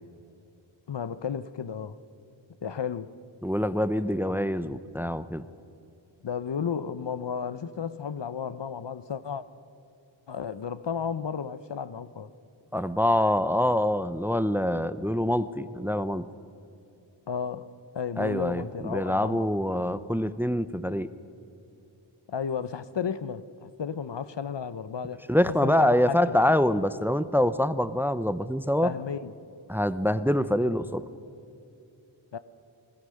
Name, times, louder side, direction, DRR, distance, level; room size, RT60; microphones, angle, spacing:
voice 1, 0.9-2.0 2.6-3.1 6.2-9.5 10.3-12.3 17.3-17.7 17.9-19.5 22.3-25.2 25.6-26.4 28.8-29.3 32.3-32.4, left 7 dB, 65° left, 0.8 m, -33 dB
voice 2, 3.4-5.5 12.7-16.2 18.2-21.1 25.3-28.9 29.7-31.0, left 1 dB, 5° right, 0.7 m, -25 dB
20.5 x 20.5 x 6.4 m
wide cardioid pair, 55°, 47 cm